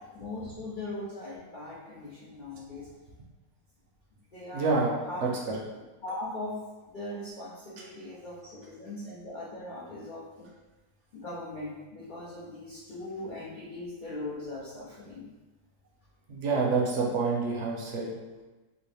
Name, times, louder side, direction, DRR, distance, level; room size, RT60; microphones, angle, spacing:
voice 1, 0.1-2.9 4.3-4.7 5.1-5.2 6.0-6.6 6.9-10.5 11.1-15.3, left 2 dB, 70° left, -8 dB, 0.4 m, -40 dB
voice 2, 4.5-4.9 5.2-5.3 16.3-18.1, right 4 dB, 60° right, -2 dB, 0.8 m, -27 dB
3.0 x 2.4 x 3.2 m, 1.2 s
omnidirectional pair, 1.7 m